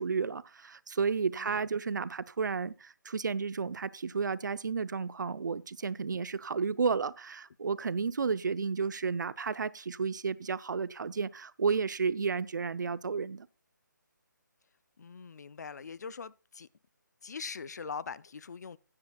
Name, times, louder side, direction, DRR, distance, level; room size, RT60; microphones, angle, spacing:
voice 1, 0.0-13.5, right 5 dB, 65° right, 0.6 m, -32 dB
voice 2, 15.0-16.7 17.2-18.8, left 5 dB, 55° left, 0.5 m, -42 dB
15.0 x 9.7 x 2.3 m
hypercardioid pair, 170°, 11 cm